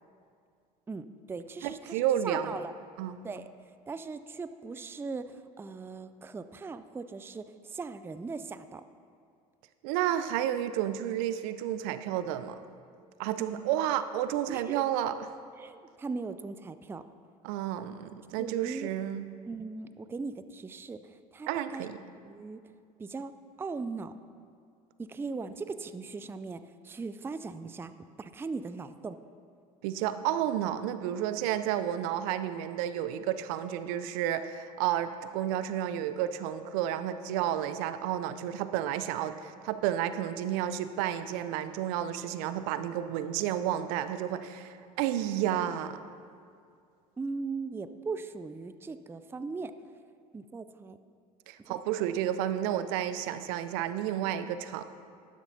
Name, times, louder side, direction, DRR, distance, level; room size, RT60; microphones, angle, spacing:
voice 1, 0.9-2.7 3.2-3.5 3.9-8.8 13.4-13.6 14.5-14.8 15.6-17.0 18.4-18.9 19.5-21.9 22.2-22.6 23.0-23.3 23.6-24.1 25.0-29.2 47.2-49.7 50.3-51.0 51.6-52.1, right 4 dB, 10° right, 12 dB, 0.4 m, -39 dB
voice 2, 1.6-2.6 3.0-3.2 9.8-12.6 13.2-15.1 17.4-19.3 21.5-22.0 29.8-46.0 51.5-54.8, right 11 dB, 65° right, 12 dB, 0.5 m, -31 dB
12.0 x 11.0 x 2.7 m, 2.3 s
hypercardioid pair, 65°, 20 cm